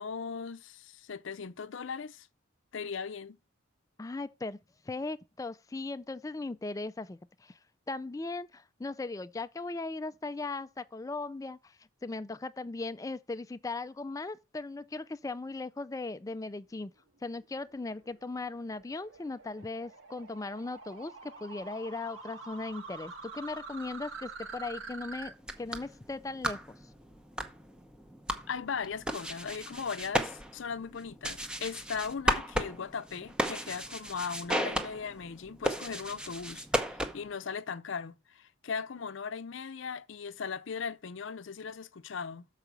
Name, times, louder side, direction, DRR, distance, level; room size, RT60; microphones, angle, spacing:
voice 1, 0.0-2.3 2.7-3.4 28.5-42.5, left 6 dB, 65° left, 0.6 m, -38 dB
voice 2, 4.0-4.6 4.9-7.6 7.9-16.9 17.2-26.8, left 3 dB, 15° left, 0.3 m, -38 dB
sound 1, 17.3-25.3, right 4 dB, 75° right, 1.6 m, -46 dB
sound 2, 25.3-37.4, equal, 5° right, 0.8 m, -35 dB
6.9 x 4.9 x 5.7 m
head